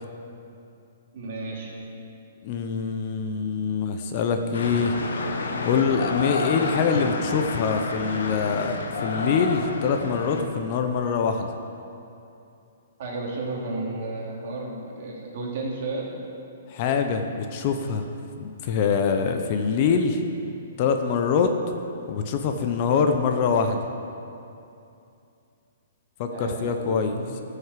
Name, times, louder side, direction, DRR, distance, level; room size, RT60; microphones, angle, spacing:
voice 1, 1.1-1.7 13.0-16.1 26.3-27.4, right 3 dB, 45° right, -3 dB, 2.7 m, -33 dB
voice 2, 2.4-5.0 5.6-11.5 16.7-18.1 18.4-20.2 20.8-21.5 22.1-23.9 26.2-27.2, left 6 dB, 30° left, 6 dB, 0.7 m, -24 dB
sound 1, 4.5-10.4, left 3 dB, 85° left, 1.2 m, -30 dB
14.5 x 6.5 x 7.4 m, 2.7 s
hypercardioid pair, 170°, 0 cm